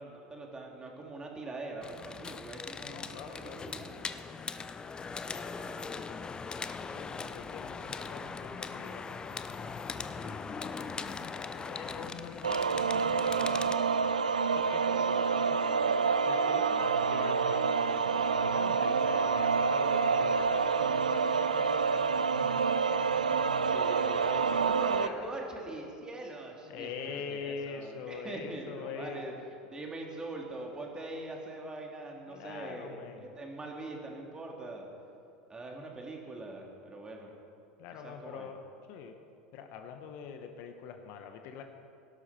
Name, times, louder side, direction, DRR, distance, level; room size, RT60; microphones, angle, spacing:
voice 1, 0.0-4.1 5.1-6.0 23.7-29.3 29.6-34.9 35.5-37.3 38.0-38.5, right 2 dB, 20° right, 0 dB, 3.0 m, -43 dB
sound 1, 1.8-13.7, left 5 dB, 20° left, 0.7 m, -40 dB
voice 2, 2.9-3.6 6.8-13.6 14.5-18.1 18.5-23.8 24.1-24.6 24.9-25.4 26.7-29.2 32.3-33.3 37.8-38.6 38.9-39.1 39.5-41.6, left 6 dB, 55° left, 6 dB, 1.2 m, -45 dB
sound 2, 12.4-25.1, right 5 dB, 90° right, 0.5 m, -28 dB
18.0 x 12.0 x 4.4 m, 2.5 s
hypercardioid pair, 80°, 4 cm